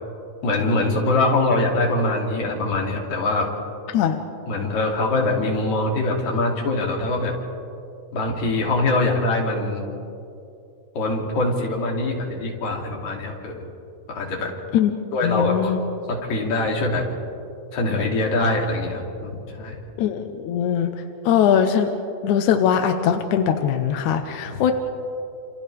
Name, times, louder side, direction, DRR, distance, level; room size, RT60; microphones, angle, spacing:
voice 1, 0.4-3.5 4.5-7.3 8.1-9.8 11.0-13.7 14.1-14.5 15.1-15.7 16.1-17.0 17.7-19.7 24.5-24.6, left 2 dB, 50° left, -1 dB, 3.8 m, -23 dB
voice 2, 15.2-15.8 20.0-20.9 21.3-21.9 22.2-24.7, left 8 dB, 75° left, 6 dB, 1.9 m, -21 dB
29.0 x 28.5 x 3.4 m, 2.7 s
omnidirectional pair, 4.3 m